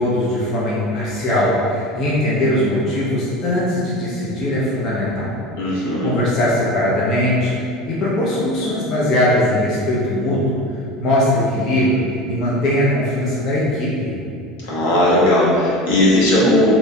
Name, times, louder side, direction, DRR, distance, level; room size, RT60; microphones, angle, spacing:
voice 1, 0.0-5.3 5.6-10.6 11.0-14.1, left 1 dB, 50° left, -7 dB, 0.6 m, -20 dB
voice 2, 5.6-6.1 14.6-16.7, left 1 dB, 80° left, -7 dB, 0.8 m, -16 dB
2.9 x 2.2 x 2.7 m, 2.5 s
supercardioid pair, 100°, 0 cm